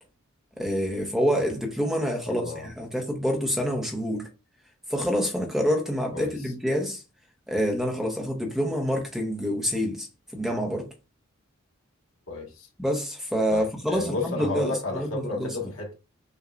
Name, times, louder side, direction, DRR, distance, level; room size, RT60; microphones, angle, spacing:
voice 1, 0.6-4.3 4.9-7.0 7.5-10.1 10.3-10.9 12.8-15.5, equal, ahead, 0.7 m, -27 dB
voice 2, 2.3-2.7 6.1-6.3 12.3-12.7 13.5-15.9, left 3 dB, 70° left, 1.4 m, -32 dB
6.6 x 2.2 x 2.4 m
head